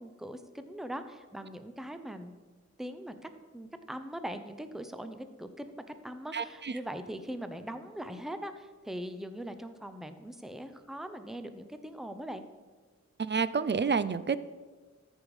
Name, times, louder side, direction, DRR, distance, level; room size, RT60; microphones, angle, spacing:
voice 1, 0.0-2.3 2.8-12.5, equal, ahead, 9 dB, 0.7 m, -41 dB
voice 2, 6.3-6.8 13.2-14.4, right 5 dB, 40° right, 15 dB, 0.5 m, -29 dB
13.5 x 5.4 x 4.9 m, 1.3 s
wide cardioid pair, 60°, 29 cm